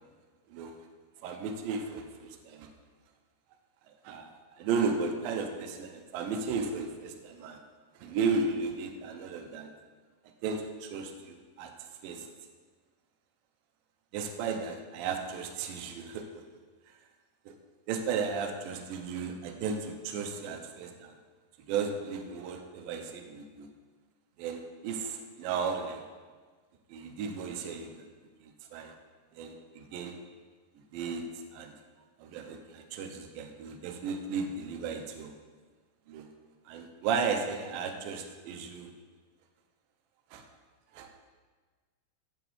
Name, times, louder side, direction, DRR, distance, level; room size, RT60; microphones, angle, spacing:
voice 1, 1.2-2.7 4.0-7.6 8.0-9.7 10.4-11.7 12.0-12.3 14.1-16.4 17.5-17.6 17.9-21.1 21.7-23.7 24.4-26.0 26.9-28.0 28.7-28.9 29.4-30.2 30.9-31.2 31.5-31.7 32.2-35.3 36.1-36.3 36.7-38.9 40.3-40.4 40.9-41.1, right 5 dB, 80° right, 5 dB, 2.4 m, -34 dB
8.9 x 7.0 x 3.1 m, 1.5 s
omnidirectional pair, 4.2 m